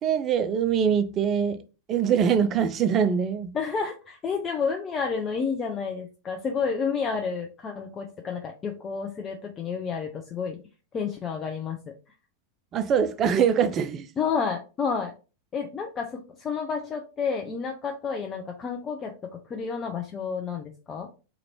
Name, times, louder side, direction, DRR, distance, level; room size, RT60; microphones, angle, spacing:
voice 1, 0.0-1.6 1.9-3.5 12.7-14.1, right 7 dB, 30° right, 0.4 m, -23 dB
voice 2, 3.5-10.6 10.9-11.9 14.2-15.1 15.5-21.1, left 5 dB, 25° left, 0.5 m, -30 dB
3.0 x 2.5 x 4.3 m
figure-of-eight pair, 90°, 0 cm